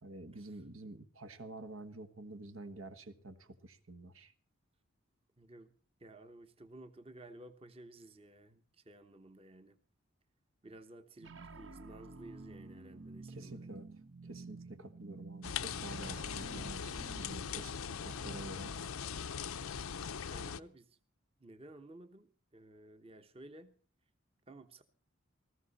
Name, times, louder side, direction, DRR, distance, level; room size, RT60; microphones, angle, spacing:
voice 1, 0.0-4.3 13.3-13.8 14.2-18.7, right 2 dB, 80° right, 1.5 m, -49 dB
voice 2, 5.4-5.7 6.0-9.8 10.6-13.7 20.3-21.0 21.4-23.7 24.5-24.8, right 1 dB, 25° right, 1.0 m, -54 dB
sound 1, 11.2-17.3, right 3 dB, 60° right, 1.1 m, -50 dB
sound 2, 15.4-20.6, left 7 dB, 85° left, 0.6 m, -40 dB
19.0 x 14.5 x 4.2 m
head